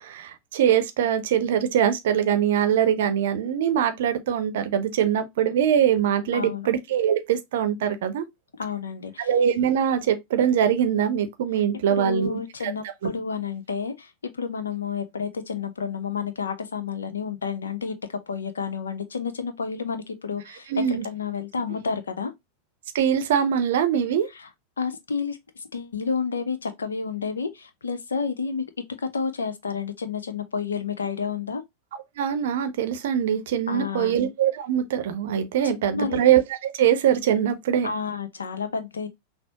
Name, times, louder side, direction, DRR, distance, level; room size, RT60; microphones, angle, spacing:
voice 1, 0.0-8.2 9.2-12.7 20.7-21.0 22.9-24.3 32.2-37.9, right 9 dB, 55° right, 0.6 m, -23 dB
voice 2, 6.3-6.7 8.6-9.3 11.9-22.3 24.3-24.5 24.8-28.6 29.1-31.6 33.7-34.2 35.6-36.2 37.8-39.1, left 5 dB, 70° left, 0.7 m, -30 dB
6.0 x 2.0 x 2.8 m
figure-of-eight pair, 90°, 0 cm